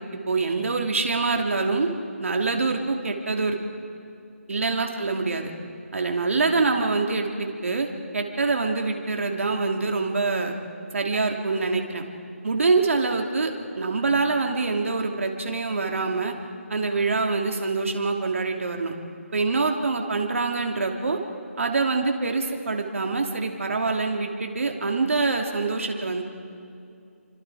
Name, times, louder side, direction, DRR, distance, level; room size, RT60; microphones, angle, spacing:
voice 1, 0.3-1.9 2.2-3.6 4.5-5.5 5.9-7.9 8.1-10.5 10.9-12.0 12.4-16.3 16.7-18.9 19.3-21.2 21.6-26.2, right 3 dB, 60° right, 2 dB, 2.9 m, -25 dB
29.5 x 25.0 x 5.0 m, 2.5 s
figure-of-eight pair, 165°, 8 cm